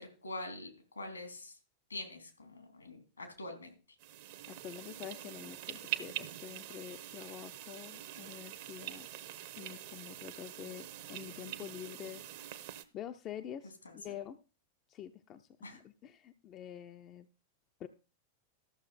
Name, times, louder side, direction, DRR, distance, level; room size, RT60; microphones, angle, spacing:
voice 1, 0.0-1.6 1.9-3.7 13.8-14.1 15.6-15.8, left 2 dB, 80° left, 4 dB, 3.3 m, -45 dB
sound 1, 4.0-12.8, right 12 dB, 50° right, 1.0 m, -44 dB
voice 2, 4.5-9.1 9.6-12.5 12.9-14.4 14.9-17.3 17.8-17.9, left 10 dB, 35° left, 8 dB, 0.7 m, -47 dB
13.5 x 6.7 x 4.2 m, 0.33 s
figure-of-eight pair, 90°, 0 cm